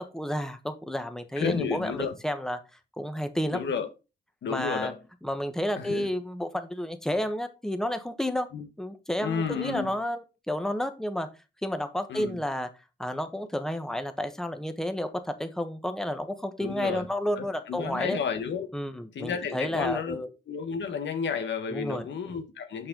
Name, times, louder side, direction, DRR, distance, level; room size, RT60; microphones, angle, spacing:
voice 1, 0.1-2.6 3.0-3.6 4.5-4.9 5.2-8.5 8.8-11.3 11.6-12.7 13.0-18.2 18.7-20.3 21.7-22.1, equal, 5° left, 1.1 m, -31 dB
voice 2, 1.4-2.1 3.5-3.9 4.4-4.9 5.8-6.1 8.5-8.6 9.2-9.9 12.1-12.4 16.6-17.1 17.4-18.7 19.1-20.2 20.5-22.9, left 6 dB, 75° left, 1.3 m, -31 dB
6.2 x 5.6 x 3.8 m
cardioid pair, 60°, 19 cm